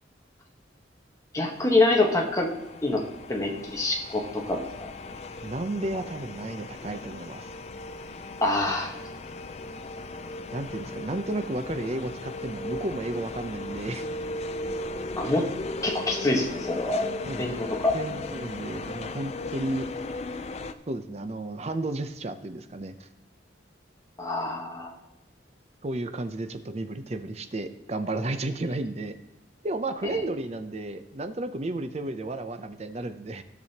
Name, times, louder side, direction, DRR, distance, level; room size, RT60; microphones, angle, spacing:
voice 1, 1.3-2.5 2.8-3.0 3.3-4.9 8.4-9.0 15.2-15.5 15.8-17.1 17.4-18.0 24.2-24.9 30.1-30.2, left 2 dB, 15° left, -1 dB, 1.2 m, -25 dB
sound 1, 1.8-20.7, left 2 dB, 35° left, 0.4 m, -37 dB
voice 2, 5.4-7.5 10.5-14.1 17.2-17.7 17.9-19.9 20.9-23.1 25.8-29.1 29.6-33.4, right 2 dB, 35° right, 9 dB, 0.5 m, -33 dB
15.0 x 6.2 x 2.9 m, 1.0 s
head